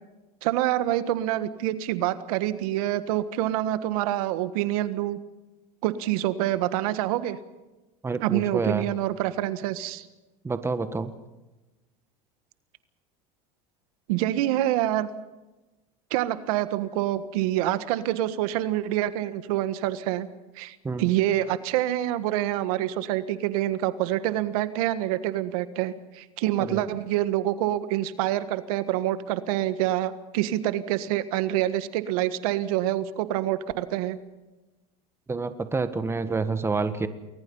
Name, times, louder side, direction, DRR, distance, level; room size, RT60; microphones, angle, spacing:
voice 1, 0.4-5.2 5.8-7.4 8.2-10.0 14.1-15.1 16.1-20.3 20.5-34.2, right 13 dB, 75° right, 12 dB, 1.6 m, -26 dB
voice 2, 8.0-8.9 10.4-11.1 20.8-21.1 26.6-26.8 35.3-37.1, right 4 dB, 15° right, 10 dB, 1.6 m, -28 dB
29.0 x 21.0 x 5.6 m, 1.1 s
supercardioid pair, 120°, 19 cm